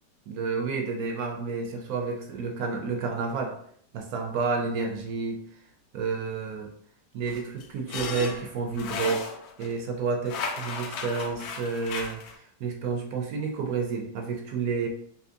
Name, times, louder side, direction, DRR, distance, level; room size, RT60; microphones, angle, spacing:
voice 1, 0.3-3.5 3.9-5.4 5.9-6.7 7.1-9.3 9.6-14.9, right 4 dB, 70° right, 3 dB, 0.9 m, -30 dB
sound 1, 7.3-9.7 10.3-12.4, left 5 dB, 70° left, 0.9 m, -35 dB
3.6 x 2.7 x 2.6 m, 0.63 s
omnidirectional pair, 2.0 m